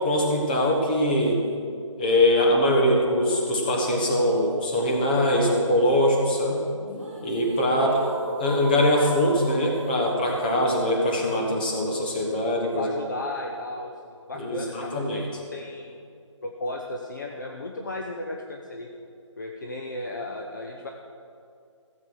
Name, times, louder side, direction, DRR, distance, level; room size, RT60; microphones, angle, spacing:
voice 1, 0.0-1.4 2.0-6.6 7.2-8.0 8.4-12.9 14.4-15.3, left 1 dB, 20° left, -1 dB, 1.3 m, -22 dB
sound 1, 6.7-12.7, right 2 dB, 25° right, 2.8 m, -37 dB
voice 2, 7.6-8.0 12.8-16.0 16.4-18.9 19.4-20.9, left 2 dB, 35° left, 1 dB, 0.8 m, -35 dB
16.0 x 7.4 x 6.4 m, 2.4 s
hypercardioid pair, 175°, 16 cm